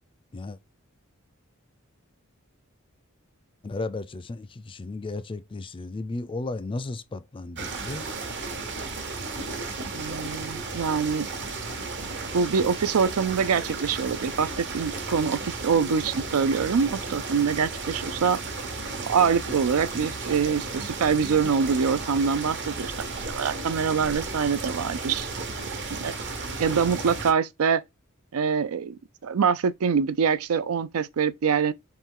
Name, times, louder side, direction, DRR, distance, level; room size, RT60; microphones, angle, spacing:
voice 1, 3.6-8.1, left 2 dB, 25° left, 0.4 m, -34 dB
sound 1, 7.5-27.3, right 3 dB, 55° right, 1.1 m, -34 dB
voice 2, 9.9-11.3 12.3-18.4 19.1-22.9 23.3-25.3 26.0-26.1 26.6-27.8 28.3-31.7, right 6 dB, 85° right, 0.4 m, -24 dB
4.4 x 3.1 x 3.7 m
head